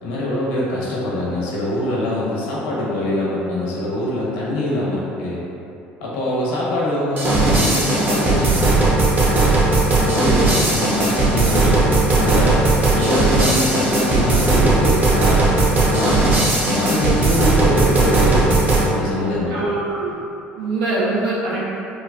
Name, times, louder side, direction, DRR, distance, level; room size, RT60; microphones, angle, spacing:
voice 1, 0.0-5.4 6.0-9.0 10.0-11.8 12.1-12.7 12.9-15.6 15.9-16.3 16.7-19.5, left 1 dB, 80° left, -6 dB, 0.9 m, -23 dB
sound 1, 7.2-18.9, right 2 dB, 35° right, 0.9 m, -17 dB
voice 2, 19.5-20.2 20.6-21.6, right 2 dB, 80° right, -8 dB, 1.0 m, -23 dB
4.5 x 2.3 x 2.4 m, 2.7 s
hypercardioid pair, 70°, 5 cm